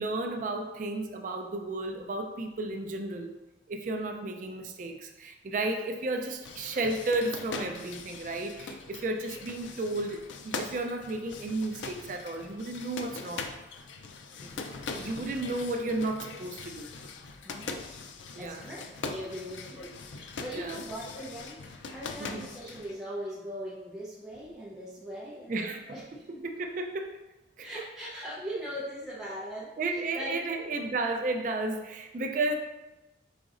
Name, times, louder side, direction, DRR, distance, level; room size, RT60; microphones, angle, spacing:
voice 1, 0.0-3.3 3.7-13.5 15.0-16.9 18.4-18.6 20.5-20.8 22.2-22.5 25.5-25.8 26.4-27.1 27.6-27.7 29.8-32.5, right 2 dB, 45° right, 4 dB, 0.3 m, -33 dB
sound 1, 6.4-23.0, left 4 dB, 90° left, 0.4 m, -42 dB
voice 2, 14.4-15.1 17.4-17.9 18.4-26.4 27.6-30.4, equal, ahead, -9 dB, 0.6 m, -40 dB
5.0 x 3.8 x 2.4 m, 1.0 s
head